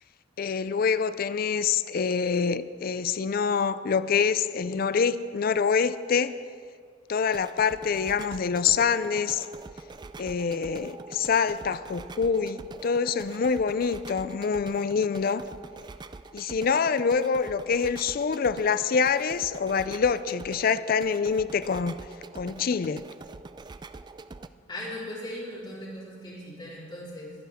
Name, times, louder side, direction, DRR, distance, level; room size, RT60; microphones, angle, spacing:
voice 1, 0.4-6.4 7.1-9.5 10.2-15.4 16.3-22.0 22.3-23.0, left 6 dB, 50° left, 14 dB, 0.4 m, -26 dB
sound 1, 7.2-24.5, right 3 dB, 25° right, 0.3 m, -44 dB
voice 2, 24.7-27.3, left 1 dB, 25° left, -7 dB, 4.1 m, -38 dB
22.5 x 10.0 x 3.6 m, 2.1 s
head